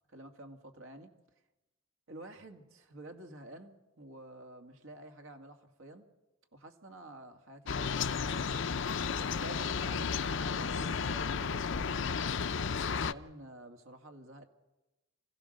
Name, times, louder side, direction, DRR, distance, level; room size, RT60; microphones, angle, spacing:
voice 1, 0.1-1.1 2.1-6.1 6.5-8.7 9.2-12.1 12.8-14.5, right 1 dB, 90° right, 4 dB, 2.3 m, -50 dB
sound 1, 7.7-13.1, left 6 dB, 65° left, 0.6 m, -33 dB
26.5 x 16.5 x 6.6 m, 1.1 s
head